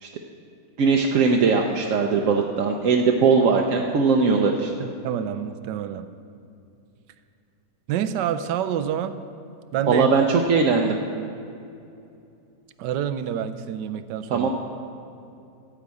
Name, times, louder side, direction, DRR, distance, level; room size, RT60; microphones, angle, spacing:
voice 1, 0.8-4.7 9.9-11.0 14.3-14.5, right 4 dB, 60° right, 1 dB, 0.9 m, -20 dB
voice 2, 4.8-6.1 7.9-9.1 9.7-10.1 12.8-14.5, right 9 dB, 90° right, 11 dB, 1.3 m, -27 dB
14.5 x 5.1 x 8.4 m, 2.6 s
omnidirectional pair, 1.8 m